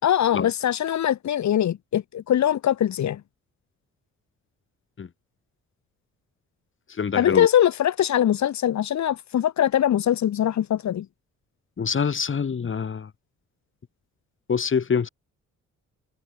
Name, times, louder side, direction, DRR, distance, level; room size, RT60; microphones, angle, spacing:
voice 1, 0.0-3.2 7.2-11.1, left 10 dB, 65° left, 4.3 m, -22 dB
voice 2, 6.9-7.5 11.8-13.1 14.5-15.1, left 6 dB, 40° left, 5.9 m, -25 dB
cardioid pair, 90°, 30 cm